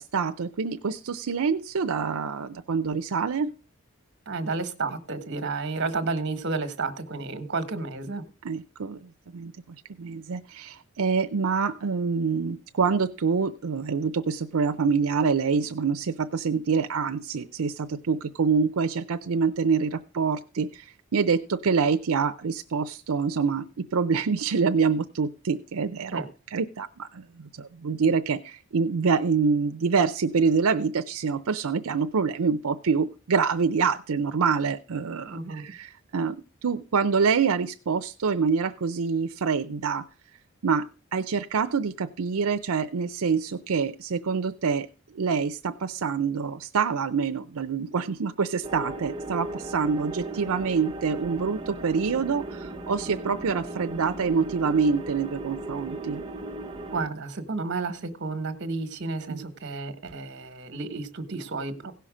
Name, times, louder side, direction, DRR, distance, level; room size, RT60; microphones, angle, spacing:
voice 1, 0.0-3.5 8.4-26.2 26.5-40.0 40.6-44.9 45.1-56.2 59.3-59.4, right 5 dB, 80° right, 9 dB, 0.5 m, -26 dB
voice 2, 4.3-8.2 26.1-26.3 35.3-35.7 56.9-61.9, right 3 dB, 50° right, 10 dB, 1.2 m, -31 dB
sound 1, 48.6-57.1, right 2 dB, 20° right, 0.7 m, -37 dB
16.5 x 5.7 x 5.0 m, 0.36 s
head